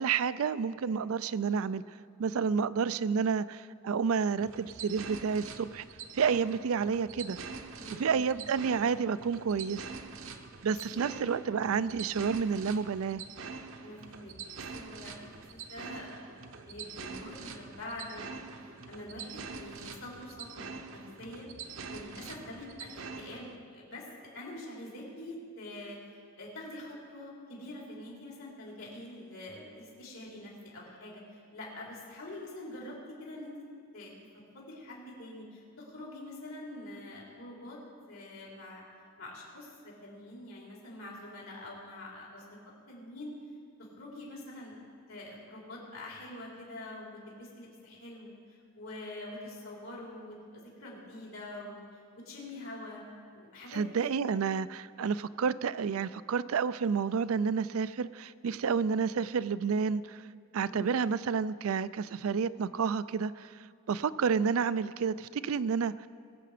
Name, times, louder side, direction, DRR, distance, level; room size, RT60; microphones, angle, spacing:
voice 1, 0.0-1.8 2.2-5.8 6.1-7.4 7.9-9.8 10.6-13.2 53.7-60.2 60.5-63.5 63.9-66.1, right 6 dB, 90° right, 16 dB, 0.4 m, -30 dB
sound 1, 4.4-23.6, right 5 dB, 70° right, 0.9 m, -45 dB
voice 2, 7.7-8.3 10.7-11.4 13.8-16.4 16.7-24.1 24.3-26.0 26.4-33.5 33.9-34.1 34.5-37.8 38.1-38.8 39.2-42.5 42.9-43.3 43.8-44.8 45.1-51.8 52.2-53.0 53.3-54.4 60.7-61.1, left 1 dB, 80° left, -3 dB, 3.9 m, -45 dB
21.5 x 7.8 x 5.0 m, 2.2 s
head